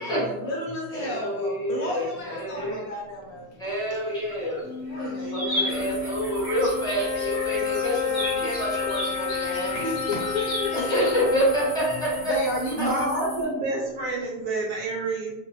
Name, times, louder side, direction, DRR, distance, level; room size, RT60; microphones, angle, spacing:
voice 1, 0.0-3.4 4.9-5.9 9.6-11.0 12.3-13.3, left 1 dB, 65° left, -2 dB, 0.9 m, -31 dB
voice 2, 0.9-2.8 3.6-5.0 5.3-9.8 10.7-12.3 12.8-12.9, equal, 5° left, -9 dB, 1.0 m, -27 dB
sound 1, 3.7-4.6 4.9-11.2, equal, 35° left, 1.1 m, -35 dB
sound 2, 4.6-14.0, left 6 dB, 85° left, 1.2 m, -32 dB
voice 3, 5.2-5.9 12.8-15.3, right 3 dB, 70° right, -2 dB, 1.0 m, -30 dB
sound 3, 5.7-13.4, right 1 dB, 20° right, 0.9 m, -41 dB
2.6 x 2.4 x 3.1 m, 0.97 s
omnidirectional pair, 1.7 m